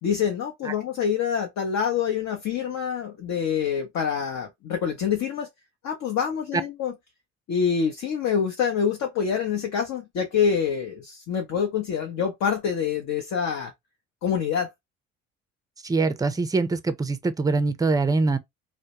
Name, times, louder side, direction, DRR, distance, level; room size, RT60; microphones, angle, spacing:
voice 1, 0.0-5.5 5.8-6.9 7.5-13.7 14.2-14.7, left 7 dB, 55° left, 0.7 m, -26 dB
voice 2, 15.8-18.4, right 3 dB, 10° right, 0.4 m, -23 dB
2.1 x 2.1 x 2.8 m
hypercardioid pair, 60°, 32 cm